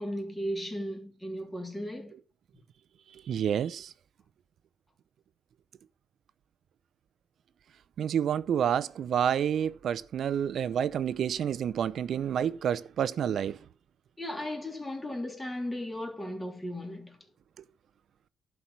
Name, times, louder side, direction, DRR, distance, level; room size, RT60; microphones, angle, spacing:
voice 1, 0.0-2.1 14.2-17.2, equal, 10° left, 2.9 m, -36 dB
voice 2, 3.1-3.9 8.0-13.6 17.6-17.7, right 9 dB, 65° right, 0.7 m, -29 dB
11.5 x 4.8 x 6.0 m
cardioid pair, 90°, 0 cm